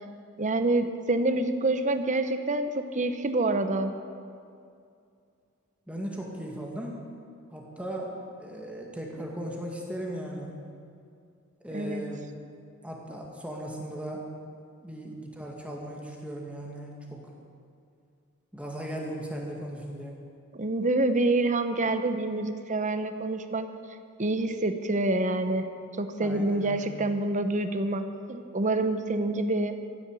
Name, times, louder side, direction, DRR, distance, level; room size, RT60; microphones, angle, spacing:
voice 1, 0.4-3.9 11.7-12.0 20.5-23.7 24.2-25.7 26.0-29.8, right 2 dB, 35° right, 8 dB, 0.9 m, -27 dB
voice 2, 5.9-7.0 7.5-10.5 11.6-12.3 12.8-14.2 14.8-17.2 18.5-20.2 26.2-26.9, right 1 dB, 5° right, -1 dB, 1.9 m, -37 dB
15.0 x 9.7 x 8.3 m, 2.4 s
head